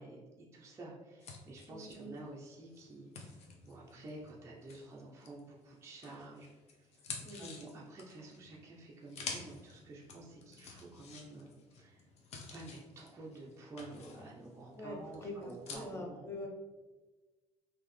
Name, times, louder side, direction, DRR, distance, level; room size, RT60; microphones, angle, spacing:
voice 1, 0.0-12.1 12.5-16.3, right 2 dB, 25° right, -3 dB, 0.5 m, -50 dB
sound 1, 1.2-5.6 6.0-15.8, left 4 dB, 60° left, 0.7 m, -50 dB
voice 2, 1.7-2.1 7.2-7.4 14.7-16.5, left 1 dB, 20° left, 0 dB, 0.7 m, -44 dB
3.7 x 2.7 x 3.1 m, 1.3 s
cardioid pair, 130°, 12 cm